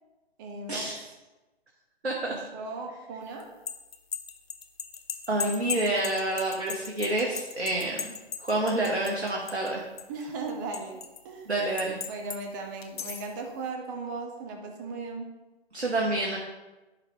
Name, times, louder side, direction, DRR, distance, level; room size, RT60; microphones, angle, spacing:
voice 1, 0.4-0.9 2.3-3.5 10.1-11.0 11.2-11.5 12.1-15.3, right 3 dB, 20° right, 2 dB, 0.5 m, -37 dB
voice 2, 2.0-2.3 5.3-8.1 8.4-9.8 11.5-12.0 15.7-16.4, right 2 dB, 85° right, -1 dB, 1.2 m, -28 dB
sound 1, 3.4-9.7 10.0-11.2 11.8-12.4 12.8-13.3, left 6 dB, 65° left, 0.8 m, -36 dB
10.5 x 4.0 x 3.2 m, 1.1 s
figure-of-eight pair, 130°, 32 cm